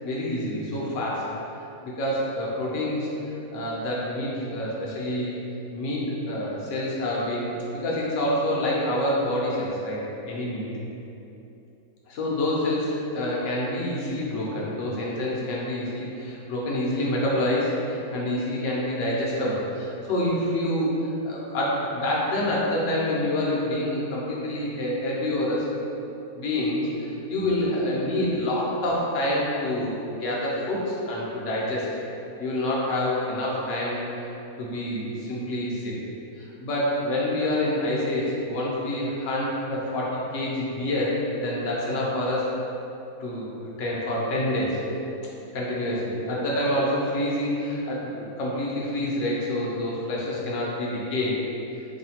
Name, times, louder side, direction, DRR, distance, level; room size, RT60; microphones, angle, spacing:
voice 1, 0.0-1.3 1.8-3.1 3.5-5.4 5.7-10.7 12.1-20.9 21.2-25.6 26.4-32.0 32.4-34.3 34.6-35.9 36.4-41.1 41.4-42.5 43.2-43.5 43.8-44.8 45.5-51.4, left 1 dB, 60° left, -5 dB, 0.9 m, -27 dB
3.1 x 2.3 x 4.3 m, 2.9 s
omnidirectional pair, 1.7 m